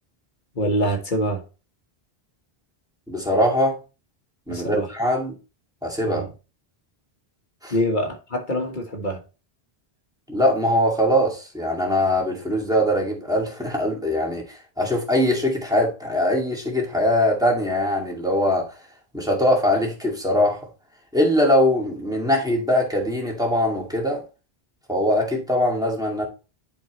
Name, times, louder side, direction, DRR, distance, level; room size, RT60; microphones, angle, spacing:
voice 1, 0.5-1.4 4.5-4.9 6.0-6.3 7.7-9.2, equal, 50° left, 1.5 m, -25 dB
voice 2, 3.1-3.8 4.5-5.4 5.8-6.2 7.6-7.7 10.3-18.7 19.1-20.6 21.1-24.2 24.9-26.2, left 1 dB, 5° right, 2.2 m, -22 dB
10.5 x 4.6 x 3.1 m
omnidirectional pair, 1.0 m